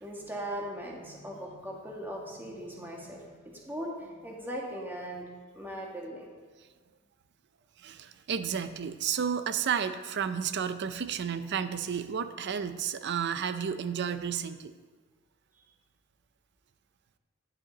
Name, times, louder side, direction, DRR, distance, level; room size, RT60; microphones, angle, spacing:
voice 1, 0.0-5.3 5.5-6.3 15.6-15.7, equal, 10° right, -2 dB, 1.6 m, -39 dB
voice 2, 7.8-14.7, right 7 dB, 55° right, 11 dB, 0.5 m, -32 dB
9.9 x 9.7 x 4.0 m, 1.4 s
head